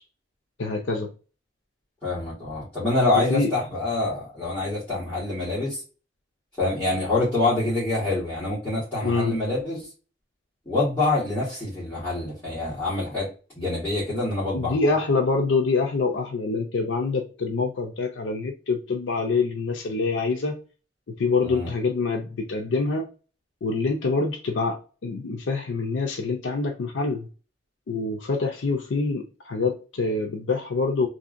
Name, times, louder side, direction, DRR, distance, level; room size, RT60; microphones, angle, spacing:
voice 1, 0.6-1.1 3.3-3.5 9.0-9.4 14.5-20.6 21.1-23.1 23.6-27.3 27.9-31.1, left 3 dB, 90° left, 0.5 m, -25 dB
voice 2, 2.0-5.8 6.6-9.9 10.7-13.3 13.6-14.8 21.4-21.7, left 2 dB, 15° left, 1.6 m, -26 dB
3.1 x 2.7 x 2.5 m
head